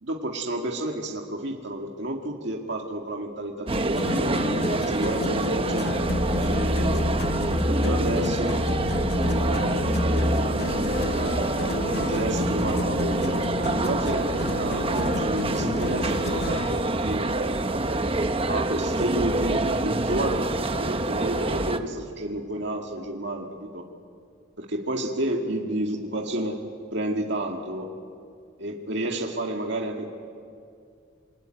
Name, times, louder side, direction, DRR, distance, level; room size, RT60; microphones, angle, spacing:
voice 1, 0.0-4.4 4.7-5.9 6.3-7.0 7.6-8.6 9.2-9.8 10.0-18.0 18.5-23.8 24.6-26.6 26.9-27.9 28.6-30.1, right 1 dB, 65° right, 1 dB, 2.2 m, -31 dB
sound 1, 3.7-16.8, left 3 dB, 55° left, 0.9 m, -32 dB
sound 2, 3.7-21.8, right 2 dB, 30° right, 1.0 m, -26 dB
sound 3, 6.0-19.8, left 1 dB, 25° left, 4.9 m, -32 dB
28.0 x 21.0 x 9.3 m, 2.3 s
head